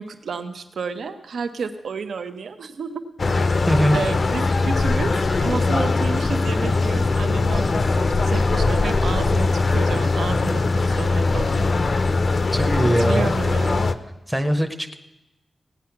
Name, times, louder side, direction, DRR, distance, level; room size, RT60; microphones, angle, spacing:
voice 1, 0.0-3.1 3.4-3.5 3.9-11.7 13.0-13.9, right 5 dB, 75° right, 8 dB, 0.8 m, -31 dB
sound 1, 3.2-13.9, left 3 dB, 40° left, 0.6 m, -21 dB
voice 2, 3.7-4.0 12.5-13.3 14.3-14.9, right 1 dB, 5° right, 5 dB, 0.7 m, -21 dB
17.0 x 9.5 x 5.9 m, 0.97 s
wide cardioid pair, 165°, 0 cm